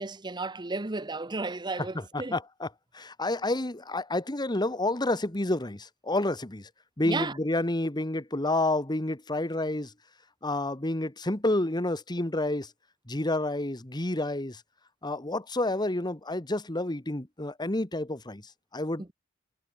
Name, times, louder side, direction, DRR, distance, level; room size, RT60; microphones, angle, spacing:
voice 1, 0.0-2.4 7.1-7.3 19.0-19.1, right 3 dB, 20° right, 0.9 m, -33 dB
voice 2, 1.9-2.7 2.9-6.7 7.0-9.9 10.4-12.7 13.1-14.6 15.0-19.1, left 2 dB, 20° left, 1.6 m, -29 dB
head